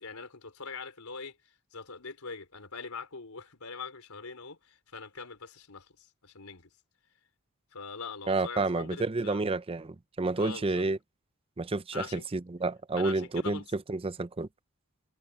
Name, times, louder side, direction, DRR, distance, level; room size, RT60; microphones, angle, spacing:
voice 1, 0.0-1.4 1.7-6.7 7.7-9.4 10.4-10.9 11.9-12.3 13.0-13.7, left 4 dB, 85° left, 3.5 m, -42 dB
voice 2, 8.3-11.0 11.6-13.6 13.9-14.5, right 3 dB, 25° right, 0.5 m, -30 dB
head